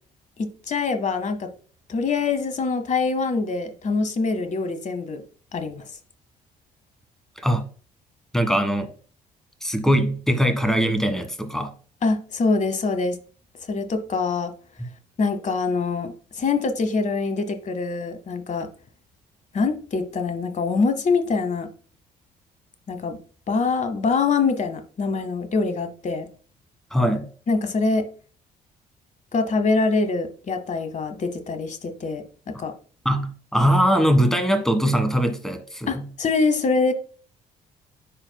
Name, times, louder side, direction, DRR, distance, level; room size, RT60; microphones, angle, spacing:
voice 1, 0.4-1.5 1.9-5.2 5.5-5.9 12.0-13.2 13.7-14.5 15.2-18.7 19.5-21.7 22.9-23.2 23.5-26.3 27.5-28.1 29.3-32.7 35.9-36.9, left 4 dB, 35° left, 1.1 m, -24 dB
voice 2, 8.3-8.9 9.6-11.7 14.8-14.9 26.9-27.3 33.0-36.1, equal, ahead, 1.5 m, -21 dB
10.0 x 4.5 x 2.2 m
figure-of-eight pair, 45°, 21 cm